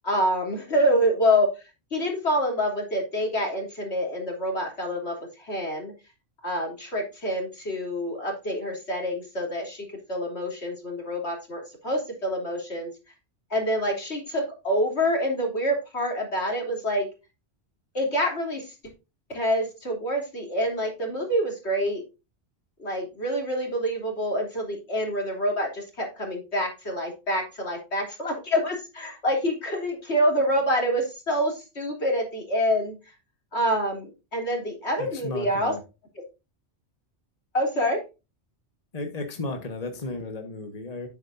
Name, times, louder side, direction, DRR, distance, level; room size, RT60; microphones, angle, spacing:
voice 1, 0.0-1.5 1.9-5.9 6.4-12.9 13.5-17.1 17.9-18.7 19.3-22.0 22.8-33.0 33.5-35.7 36.2-36.3 37.5-38.0, equal, 75° left, 1 dB, 3.5 m, -26 dB
voice 2, 35.0-35.8 38.9-41.1, left 2 dB, 35° left, 4 dB, 1.5 m, -34 dB
10.0 x 8.8 x 2.6 m, 0.27 s
omnidirectional pair, 1.1 m